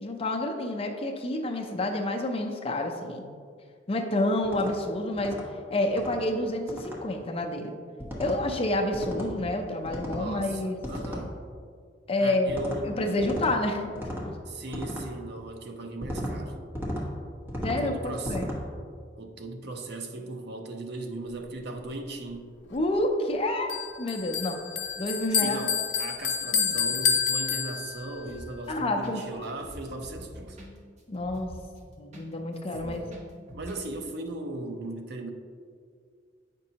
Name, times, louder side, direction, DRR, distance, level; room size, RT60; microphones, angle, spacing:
voice 1, 0.0-3.2 3.9-5.4 5.7-7.7 8.2-10.8 12.1-12.5 12.8-13.9 14.3-14.4 17.6-18.5 22.7-23.7 24.0-24.6 25.0-25.7 26.5-26.9 28.7-29.2 31.1-31.5 32.0-33.0, left 1 dB, 30° left, 3 dB, 0.5 m, -29 dB
sound 1, 4.4-4.7 5.2-5.4 5.9-6.2 6.7-7.0 8.0-8.4 8.9-9.3 9.8-10.3 10.8-11.2 12.5-12.8 13.2-13.5 13.9-14.3 14.7-15.1 16.0-16.3 16.7-17.1 17.5-17.8 18.2-18.6, equal, 10° right, 1.0 m, -35 dB
voice 2, 10.1-11.4 12.2-12.9 14.5-16.6 17.8-18.5 19.2-22.5 25.4-30.6 32.8-33.1 33.5-35.3, right 2 dB, 60° right, 4 dB, 0.6 m, -38 dB
Bell, 23.7-28.2, left 7 dB, 85° left, 0.6 m, -28 dB
sound 2, 28.2-28.7 29.0-29.2 29.4-32.3 32.5-33.8 34.1-34.2, equal, 40° right, 0.9 m, -45 dB
8.0 x 5.3 x 2.8 m, 2.1 s
head